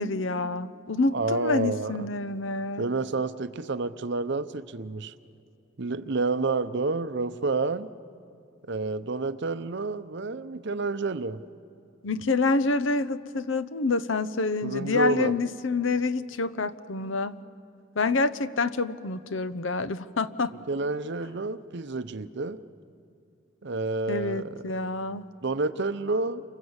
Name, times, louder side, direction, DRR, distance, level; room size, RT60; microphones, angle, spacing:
voice 1, 0.0-2.9 12.0-17.4 18.0-20.5 24.1-25.2, left 3 dB, 70° left, 14 dB, 0.8 m, -27 dB
voice 2, 1.1-2.1 2.8-5.1 5.8-7.9 8.6-11.4 14.6-15.4 20.7-22.6 23.6-24.5 25.4-26.4, right 3 dB, 60° right, 12 dB, 0.8 m, -29 dB
29.0 x 25.5 x 8.1 m, 2.6 s
head